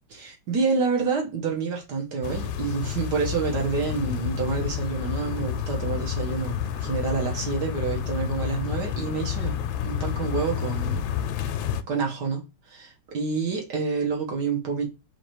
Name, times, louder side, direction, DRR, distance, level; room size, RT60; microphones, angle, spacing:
voice 1, 0.1-9.6 9.8-11.2 11.5-11.6 11.9-14.9, right 5 dB, 60° right, 1.7 m, -28 dB
sound 1, 2.2-11.8, left 9 dB, 80° left, 1.3 m, -29 dB
3.9 x 3.0 x 4.5 m
omnidirectional pair, 2.1 m